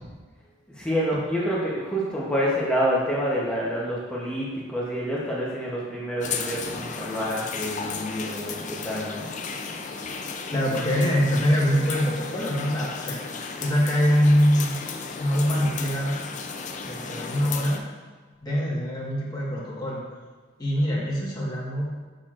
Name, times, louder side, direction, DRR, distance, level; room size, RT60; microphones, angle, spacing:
voice 1, 0.7-9.3, equal, 5° left, -6 dB, 0.9 m, -28 dB
sound 1, 6.2-17.8, left 5 dB, 40° left, 0.4 m, -34 dB
voice 2, 10.5-13.2 13.6-14.7 15.2-16.2 16.8-17.8 18.4-20.0 20.6-21.9, equal, 20° left, -6 dB, 1.5 m, -23 dB
6.5 x 5.9 x 2.5 m, 1.4 s
head